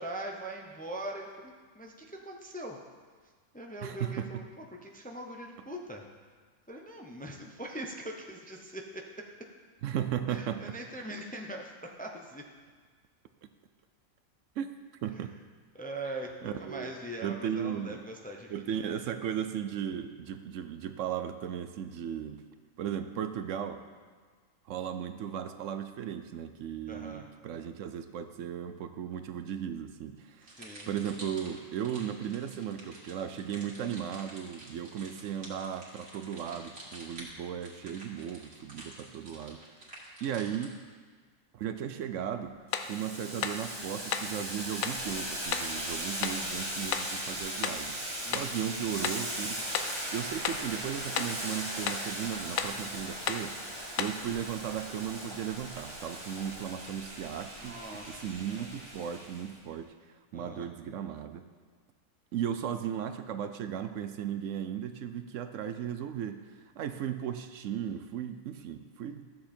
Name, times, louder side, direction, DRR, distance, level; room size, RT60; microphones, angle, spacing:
voice 1, 0.0-2.8 3.5-6.0 6.7-9.0 10.3-12.4 15.7-18.9 26.9-27.3 30.6-30.9 48.2-48.6 57.6-58.7 60.3-60.7, right 1 dB, 10° left, 1 dB, 0.6 m, -42 dB
voice 2, 3.8-4.4 9.8-10.8 14.6-14.7 15.0-15.4 16.4-16.9 17.2-18.0 18.5-22.4 22.8-23.8 24.7-39.6 40.2-40.8 41.5-42.5 42.8-53.6 54.0-57.8 58.1-59.9 60.3-61.5 62.3-66.5 66.8-69.2, right 9 dB, 70° right, 9 dB, 0.9 m, -36 dB
sound 1, 30.4-40.8, right 1 dB, 45° right, 2.5 m, -49 dB
sound 2, 42.7-43.0 43.4-43.7 44.1-44.4 44.8-45.0 45.5-45.7 46.2-46.4 46.9-47.2 47.6-47.9 48.3-48.6 49.0-49.3 49.7-50.0 50.4-50.7 51.2-51.4 51.9-52.1 52.6-52.8 53.3-53.5 54.0-54.2, left 8 dB, 85° left, 1.1 m, -33 dB
Boiling, 42.7-59.5, right 1 dB, 20° right, 2.1 m, -38 dB
13.5 x 7.5 x 4.4 m, 1.5 s
omnidirectional pair, 1.4 m